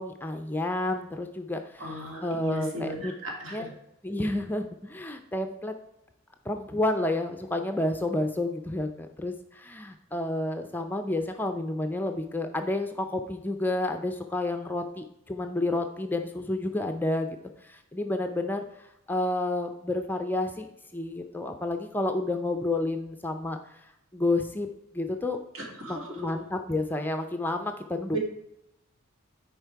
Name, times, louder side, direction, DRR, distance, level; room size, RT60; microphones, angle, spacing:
voice 1, 0.0-1.8 2.2-3.1 3.5-3.7 4.0-5.8 6.5-17.4 17.6-20.7 20.9-24.7 24.9-25.4 25.9-28.2, left 2 dB, 10° left, 5 dB, 0.4 m, -30 dB
voice 2, 1.8-3.7 25.5-26.3 28.1-28.2, right 1 dB, 70° right, -1 dB, 2.5 m, -36 dB
10.0 x 4.6 x 4.6 m, 0.84 s
head